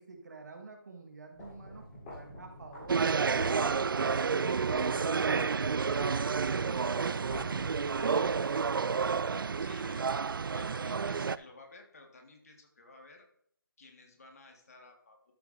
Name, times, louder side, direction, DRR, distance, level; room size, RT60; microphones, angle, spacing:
voice 1, 0.0-4.4 4.7-6.2 6.5-8.3, right 3 dB, 50° right, 3 dB, 1.6 m, -49 dB
sound 1, 1.3-8.7, left 1 dB, 15° left, 3.6 m, -48 dB
sound 2, 2.9-11.4, right 5 dB, 65° right, 0.4 m, -30 dB
voice 2, 9.6-10.1 10.5-13.2 13.8-15.3, left 3 dB, 40° left, 2 dB, 1.8 m, -54 dB
13.0 x 6.8 x 2.6 m, 0.66 s
figure-of-eight pair, 170°, 12 cm